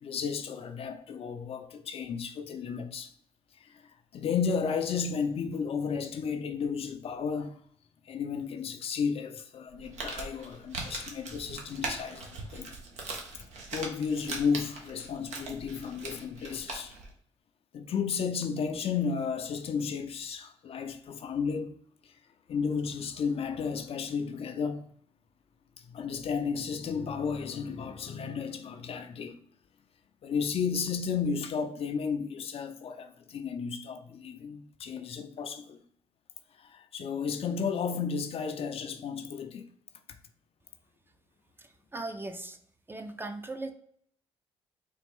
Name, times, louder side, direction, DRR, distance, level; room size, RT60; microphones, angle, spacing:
voice 1, 0.0-3.1 3.5-7.6 8.1-12.7 13.3-13.5 13.7-17.0 17.7-21.8 22.0-22.2 22.5-24.9 25.8-29.4 30.2-35.8 36.6-39.7, left 6 dB, 55° left, 0.5 m, -33 dB
Crumpling crinkling, 9.7-17.1, right 3 dB, 75° right, 0.9 m, -40 dB
voice 2, 41.6-42.6 42.9-43.7, right 2 dB, 20° right, 0.6 m, -39 dB
4.0 x 2.5 x 3.5 m
supercardioid pair, 55°, 12 cm